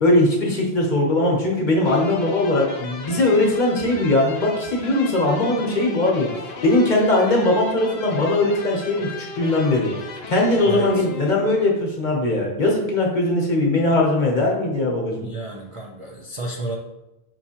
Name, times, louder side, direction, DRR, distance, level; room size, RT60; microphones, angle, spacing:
voice 1, 0.0-6.3 6.6-9.9 10.3-15.3, left 2 dB, 45° left, -1 dB, 1.0 m, -20 dB
sound 1, 1.8-11.8, left 4 dB, 70° left, 0.9 m, -37 dB
voice 2, 10.6-11.1 15.2-16.8, right 2 dB, 45° right, -2 dB, 0.4 m, -31 dB
5.7 x 3.1 x 2.8 m, 0.95 s
omnidirectional pair, 1.1 m